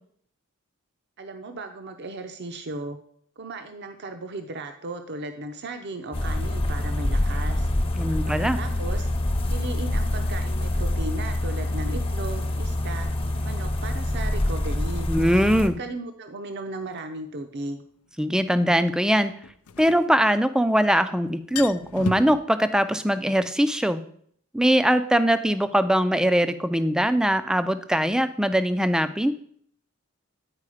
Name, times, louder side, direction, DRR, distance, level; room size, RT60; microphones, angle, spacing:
voice 1, 1.2-3.0 3.4-7.7 8.3-9.1 9.5-13.1 13.4-15.1 15.6-17.8, right 2 dB, 50° right, 6 dB, 0.6 m, -36 dB
sound 1, 6.1-15.7, left 1 dB, 25° left, 0.8 m, -26 dB
voice 2, 8.0-8.6 15.1-15.7 18.2-19.3 19.8-24.0 24.5-29.3, equal, 5° right, 11 dB, 0.4 m, -21 dB
sound 2, 17.0-17.1 19.4-20.7 21.0-21.1 21.4-22.4, left 5 dB, 90° left, 0.5 m, -33 dB
9.8 x 4.7 x 4.9 m, 0.63 s
head